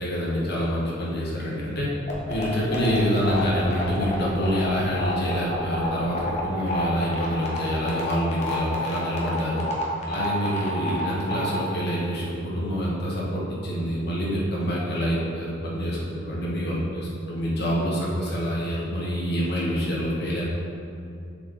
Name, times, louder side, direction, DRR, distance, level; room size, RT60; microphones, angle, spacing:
voice 1, 0.0-1.9 2.3-9.7 10.1-20.4, equal, 60° left, -5 dB, 1.5 m, -26 dB
sound 1, 2.1-11.5, left 1 dB, 35° left, 1.1 m, -29 dB
6.8 x 5.0 x 3.9 m, 2.6 s
head